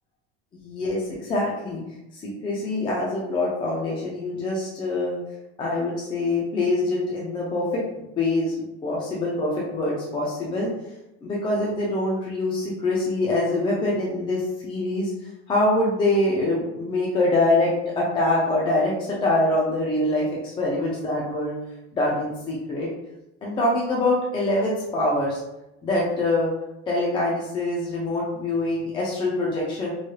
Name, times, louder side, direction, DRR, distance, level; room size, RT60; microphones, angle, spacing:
voice 1, 0.5-1.8 2.2-5.2 5.6-7.8 8.1-8.5 8.8-10.7 11.2-15.1 15.5-21.5 21.9-22.9 23.4-25.4 25.8-26.5 26.9-29.9, left 2 dB, 15° left, -5 dB, 0.4 m, -24 dB
3.2 x 2.6 x 2.2 m, 0.89 s
supercardioid pair, 140°, 32 cm